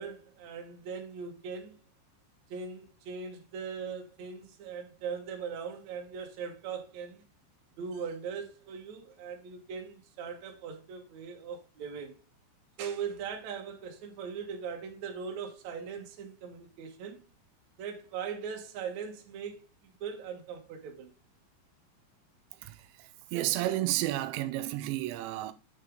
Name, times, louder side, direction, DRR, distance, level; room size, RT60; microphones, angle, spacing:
voice 1, 0.0-1.8 2.5-7.2 7.8-12.2 12.8-17.2 17.8-19.6 20.0-21.1, right 6 dB, 60° right, 2.0 m, -40 dB
voice 2, 22.6-25.5, right 15 dB, 85° right, 2.9 m, -32 dB
8.4 x 6.5 x 3.7 m
omnidirectional pair, 5.3 m